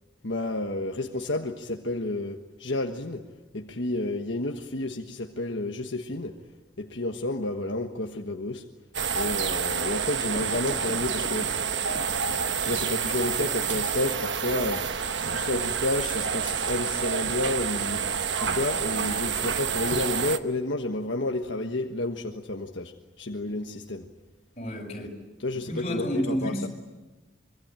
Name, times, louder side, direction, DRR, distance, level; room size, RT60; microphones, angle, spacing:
voice 1, 0.2-3.2 3.5-6.4 6.8-8.6 9.1-11.6 12.6-14.9 15.3-18.0 18.4-24.1 25.4-26.7, left 2 dB, 70° left, 3 dB, 1.4 m, -30 dB
sound 1, 8.9-20.4, right 6 dB, 65° right, 1.1 m, -28 dB
sound 2, 10.3-13.2, equal, ahead, 2.7 m, -45 dB
voice 2, 24.6-25.2 25.6-26.7, equal, 35° left, 0 dB, 5.9 m, -30 dB
25.0 x 24.0 x 9.0 m, 1.2 s
head